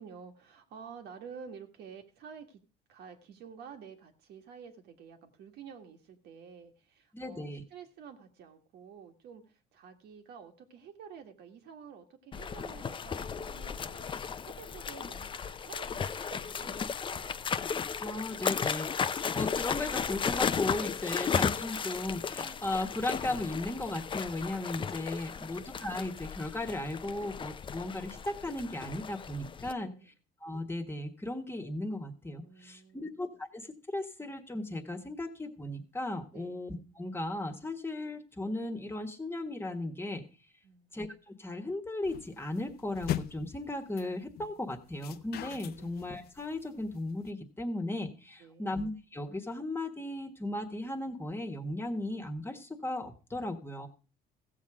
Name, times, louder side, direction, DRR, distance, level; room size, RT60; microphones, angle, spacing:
voice 1, 0.0-2.6 2.9-17.4 21.1-21.3 21.8-21.9 25.4-25.6 29.8-30.1 32.4-33.1 36.3-36.5 40.6-41.0 45.8-45.9 48.4-48.7, right 6 dB, 75° right, 5 dB, 1.8 m, -50 dB
voice 2, 7.1-7.6 18.0-29.9 30.4-40.2 40.9-53.9, left 2 dB, 15° left, 6 dB, 1.5 m, -36 dB
sound 1, 12.3-29.7, left 6 dB, 30° left, 0.6 m, -35 dB
sound 2, 42.0-47.3, left 12 dB, 65° left, 0.7 m, -40 dB
15.5 x 7.4 x 4.9 m, 0.35 s
cardioid pair, 110°, 17 cm